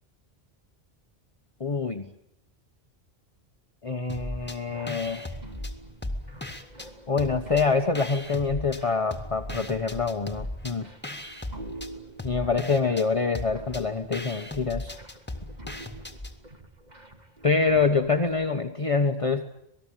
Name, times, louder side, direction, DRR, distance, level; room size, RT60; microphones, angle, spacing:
voice 1, 1.6-2.1 3.8-5.4 7.1-10.9 12.2-14.9 17.4-19.5, left 4 dB, 30° left, 5 dB, 1.1 m, -26 dB
sound 1, 4.1-4.6 4.9-6.9 7.2-8.8 9.1-16.4, left 1 dB, 10° left, 2.1 m, -37 dB
sound 2, 4.6-18.4, right 2 dB, 40° right, 2.5 m, -47 dB
27.0 x 19.0 x 9.0 m, 0.80 s
omnidirectional pair, 1.1 m